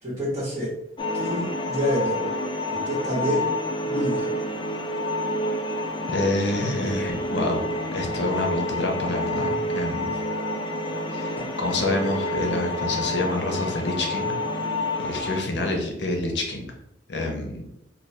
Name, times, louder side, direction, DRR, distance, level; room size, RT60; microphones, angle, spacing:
voice 1, 0.0-0.7 1.1-2.2 2.7-3.5 3.8-4.3 11.4-11.5, equal, 15° right, -7 dB, 1.3 m, -27 dB
sound 1, 1.0-15.4, left 1 dB, 25° left, 0.4 m, -28 dB
voice 2, 6.1-10.1 11.1-14.4 15.0-16.7 17.1-17.6, left 2 dB, 65° left, 2 dB, 0.7 m, -27 dB
4.2 x 2.3 x 3.2 m, 0.81 s
head